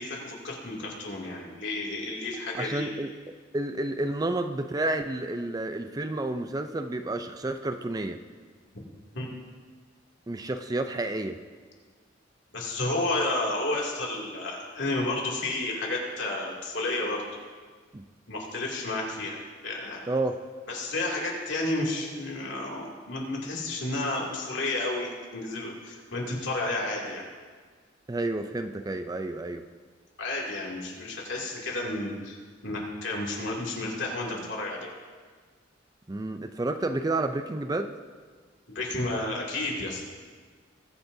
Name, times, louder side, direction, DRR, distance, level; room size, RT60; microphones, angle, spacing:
voice 1, 0.0-2.9 9.1-9.3 12.5-17.2 18.3-19.4 19.6-20.1 20.7-27.2 30.2-32.4 32.6-34.9 38.7-40.0, left 2 dB, 70° left, -2 dB, 2.6 m, -31 dB
voice 2, 2.5-3.1 3.5-8.2 10.3-11.4 17.9-18.0 20.1-20.4 28.1-29.6 36.1-37.9, right 2 dB, 20° right, 8 dB, 0.4 m, -30 dB
21.0 x 9.7 x 2.7 m, 1.6 s
head